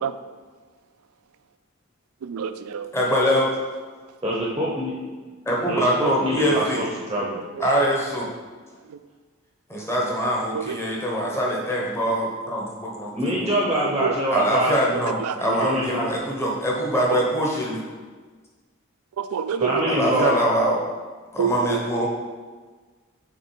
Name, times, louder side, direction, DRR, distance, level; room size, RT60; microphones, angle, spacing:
voice 1, 2.2-2.9 7.6-7.7 8.9-9.0 10.5-10.8 13.8-14.1 14.9-15.4 17.1-17.2 19.2-20.0 21.4-22.1, right 7 dB, 90° right, 12 dB, 0.3 m, -28 dB
voice 2, 2.9-3.5 5.5-6.8 7.6-8.3 9.7-13.5 14.3-17.8 19.9-20.8 21.3-22.1, equal, 10° left, -3 dB, 1.0 m, -23 dB
voice 3, 4.2-4.9 5.2-5.3 5.6-7.4 13.1-14.7 15.4-16.0 19.6-20.3, right 1 dB, 15° right, -4 dB, 0.7 m, -25 dB
5.8 x 3.9 x 4.5 m, 1.4 s
head